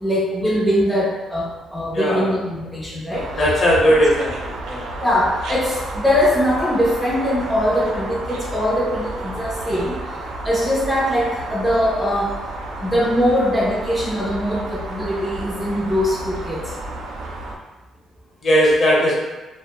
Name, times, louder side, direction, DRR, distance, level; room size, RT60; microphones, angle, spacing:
voice 1, 0.0-3.3 3.9-4.0 5.0-10.0 10.4-12.4 12.8-16.7, equal, 5° left, -5 dB, 0.5 m, -21 dB
voice 2, 1.9-2.3 3.4-4.9 18.4-19.1, equal, 50° left, -5 dB, 0.9 m, -17 dB
sound 1, 3.1-17.6, right 2 dB, 85° right, 0.4 m, -32 dB
2.1 x 2.1 x 2.8 m, 1.1 s
cardioid pair, 90°, 0 cm